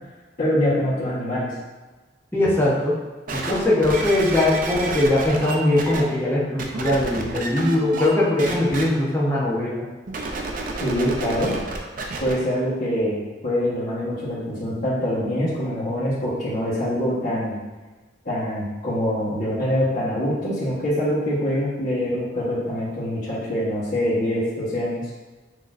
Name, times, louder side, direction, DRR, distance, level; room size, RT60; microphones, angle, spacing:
voice 1, 0.4-1.5 10.8-11.5 12.2-17.6 18.2-25.0, equal, 50° left, -13 dB, 1.3 m, -24 dB
voice 2, 2.3-3.0 3.3-9.9, left 1 dB, 10° left, -6 dB, 0.9 m, -21 dB
sound 1, 3.3-6.0 6.6-8.1 8.4-8.8 10.1-12.3 13.0-13.1, right 3 dB, 45° right, 0.5 m, -30 dB
6.1 x 3.0 x 2.6 m, 1.2 s
head